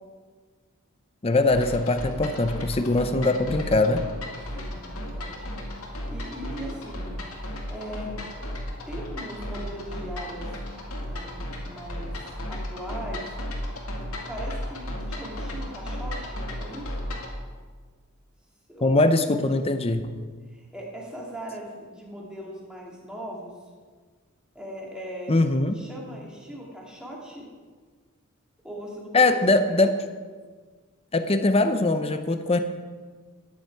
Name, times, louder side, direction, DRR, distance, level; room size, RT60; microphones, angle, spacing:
voice 1, 1.2-4.1 18.8-20.2 25.3-25.8 29.1-30.0 31.1-32.6, left 2 dB, 25° left, 9 dB, 0.6 m, -22 dB
sound 1, 1.5-17.4, left 1 dB, 80° left, 2.1 m, -34 dB
voice 2, 4.4-5.5 6.1-8.2 8.9-10.5 10.8-12.1 12.5-13.3 14.3-17.1 18.7-19.1 20.5-23.5 24.5-25.3 25.7-27.5 28.6-29.4 29.7-30.0, right 1 dB, 5° right, -4 dB, 2.6 m, -39 dB
13.5 x 9.7 x 4.8 m, 1.5 s
head